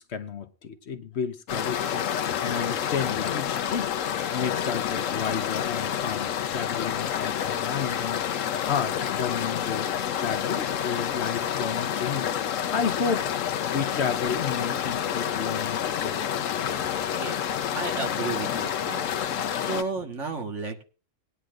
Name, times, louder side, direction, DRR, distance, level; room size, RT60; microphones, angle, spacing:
voice 1, 0.0-3.9 4.3-12.3 12.7-13.3 13.6-16.2, left 6 dB, 60° left, 1.1 m, -32 dB
sound 1, 1.5-19.8, left 9 dB, 85° left, 1.1 m, -28 dB
voice 2, 17.8-19.1 19.4-20.8, right 4 dB, 70° right, 1.7 m, -33 dB
20.0 x 9.8 x 2.4 m
omnidirectional pair, 1.3 m